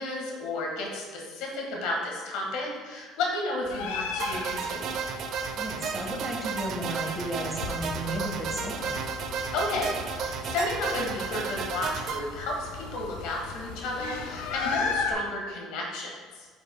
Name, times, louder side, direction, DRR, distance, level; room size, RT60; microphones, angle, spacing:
voice 1, 0.0-5.0 9.5-16.5, left 2 dB, 75° left, -1 dB, 1.5 m, -32 dB
sound 1, 3.6-15.1, left 5 dB, 90° left, 0.7 m, -36 dB
sound 2, 4.2-12.2, right 6 dB, 55° right, 0.5 m, -33 dB
voice 2, 5.6-9.1, right 1 dB, 5° right, 0 dB, 1.3 m, -34 dB
8.8 x 5.3 x 2.2 m, 1.5 s
supercardioid pair, 90°, 0 cm